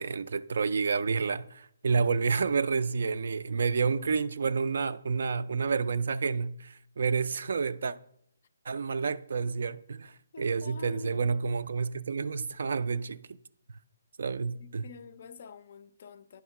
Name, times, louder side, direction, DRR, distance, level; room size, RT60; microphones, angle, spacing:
voice 1, 0.0-8.0 8.7-13.2 14.2-14.9, right 5 dB, 60° right, 0.3 m, -29 dB
voice 2, 10.3-11.1 14.5-16.4, left 5 dB, 45° left, 0.4 m, -48 dB
9.3 x 3.5 x 5.8 m
hypercardioid pair, 165°, 0 cm